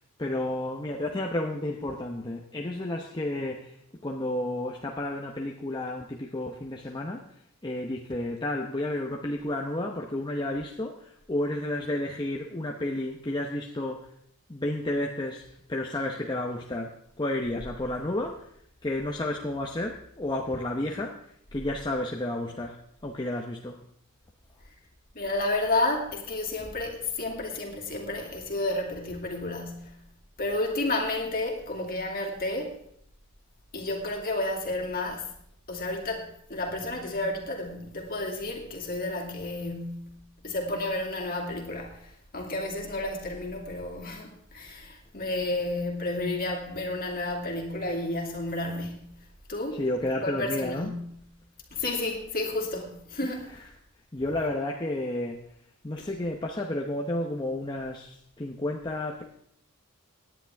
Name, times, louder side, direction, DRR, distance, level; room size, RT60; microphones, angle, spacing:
voice 1, 0.2-3.8 4.0-7.3 7.6-14.1 14.5-18.5 18.8-23.8 49.7-50.9 53.2-53.3 54.1-55.5 55.8-59.2, left 1 dB, 20° left, 0.8 m, -31 dB
voice 2, 25.1-30.0 30.4-32.7 33.7-35.3 35.7-49.0 49.5-51.2 51.7-53.5 56.0-56.1, left 2 dB, 40° left, 2.6 m, -31 dB
17.5 x 10.0 x 3.5 m
head